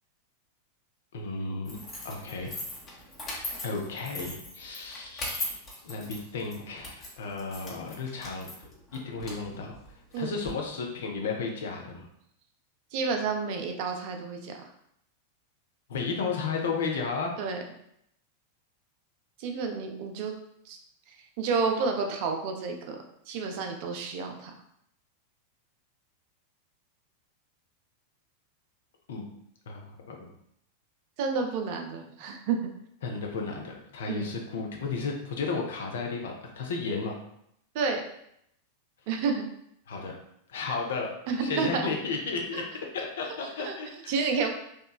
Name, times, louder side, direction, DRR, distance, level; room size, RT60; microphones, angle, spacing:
voice 1, 1.1-1.8 2.0-2.6 3.6-8.5 8.9-9.8 10.2-12.1 15.9-17.4 29.1-29.3 29.7-30.2 33.0-37.2 39.9-40.1 40.5-41.1 41.4-44.1, left 4 dB, 60° left, 1 dB, 0.5 m, -33 dB
sound 1, 1.6-10.5, left 1 dB, 25° left, 0.9 m, -40 dB
voice 2, 12.9-14.5 17.4-17.6 19.4-20.4 20.7-20.8 21.4-23.0 23.3-24.5 31.2-32.7 34.1-34.3 37.7-38.0 39.1-39.4 41.3-41.8 42.5-42.6 43.6-43.7 44.1-44.5, right 5 dB, 45° right, 3 dB, 0.4 m, -30 dB
2.9 x 2.2 x 2.2 m, 0.74 s
figure-of-eight pair, 90°, 0 cm